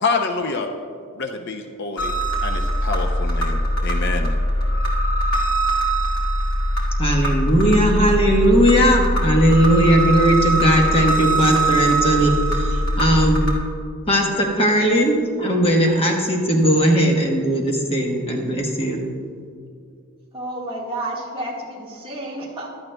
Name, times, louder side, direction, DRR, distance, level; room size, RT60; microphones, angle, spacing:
voice 1, 0.0-0.7 1.2-2.1 2.4-4.3, left 4 dB, 50° left, 4 dB, 0.5 m, -26 dB
sound 1, 2.0-13.5, right 1 dB, 80° left, 2.0 m, -21 dB
voice 2, 7.0-13.5 14.1-19.2, equal, 25° left, 0 dB, 1.1 m, -18 dB
voice 3, 20.3-22.7, right 1 dB, 25° right, -4 dB, 1.6 m, -30 dB
15.0 x 11.5 x 2.2 m, 2.3 s
head